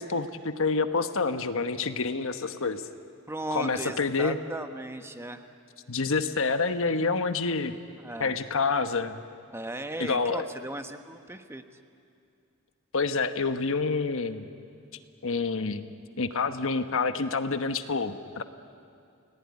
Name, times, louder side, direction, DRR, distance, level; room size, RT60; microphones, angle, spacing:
voice 1, 0.0-2.8 3.5-4.4 5.9-7.7 8.2-9.2 10.0-10.5 12.9-14.5 15.2-15.9 16.2-18.4, left 4 dB, 65° left, 9 dB, 1.2 m, -28 dB
voice 2, 3.3-5.4 8.0-8.3 9.5-11.6, right 1 dB, 10° right, 7 dB, 1.1 m, -36 dB
30.0 x 18.5 x 9.7 m, 2.5 s
head